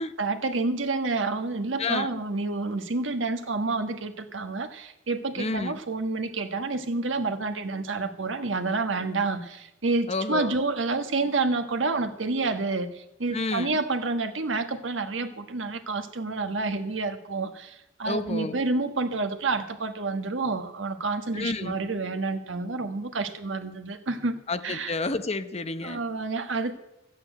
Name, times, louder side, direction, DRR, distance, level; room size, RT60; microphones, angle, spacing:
voice 1, 0.2-4.7 5.1-9.4 9.8-12.9 13.2-15.3 15.5-17.5 18.0-23.9 24.2-24.3 24.6-24.9 25.9-26.7, right 3 dB, 80° right, 7 dB, 1.4 m, -28 dB
voice 2, 5.4-5.8 10.1-10.5 13.3-13.8 18.1-18.6 21.3-21.8 24.5-26.0, left 3 dB, 35° left, 10 dB, 0.8 m, -30 dB
13.5 x 8.7 x 9.0 m, 0.88 s
head